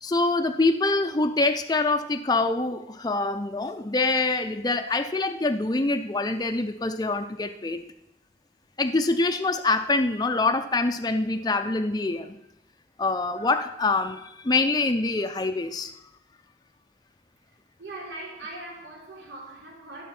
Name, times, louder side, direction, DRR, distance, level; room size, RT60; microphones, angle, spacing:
voice 1, 0.0-7.8 8.8-12.3 13.0-15.9, left 3 dB, 25° left, 7 dB, 0.5 m, -25 dB
voice 2, 17.4-20.0, right 2 dB, 90° right, -2 dB, 3.6 m, -41 dB
12.5 x 6.5 x 5.9 m, 0.81 s
head